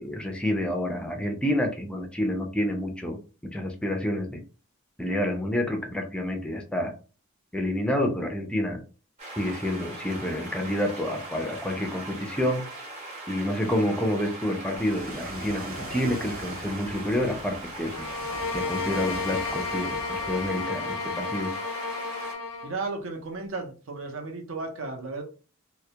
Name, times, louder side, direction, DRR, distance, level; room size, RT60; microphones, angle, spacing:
voice 1, 0.0-4.4 5.0-6.9 7.5-8.8 9.4-12.7 13.3-18.1 18.5-21.5, left 1 dB, 5° left, 3 dB, 0.3 m, -28 dB
sound 1, 9.2-22.3, right 2 dB, 30° right, 0.8 m, -40 dB
Ocean, 14.8-20.6, right 1 dB, 90° right, 1.3 m, -40 dB
sound 2, 17.9-22.8, left 4 dB, 85° left, 0.4 m, -32 dB
voice 2, 22.6-25.2, right 3 dB, 65° right, 3 dB, 0.6 m, -34 dB
2.2 x 2.0 x 2.7 m, 0.36 s
head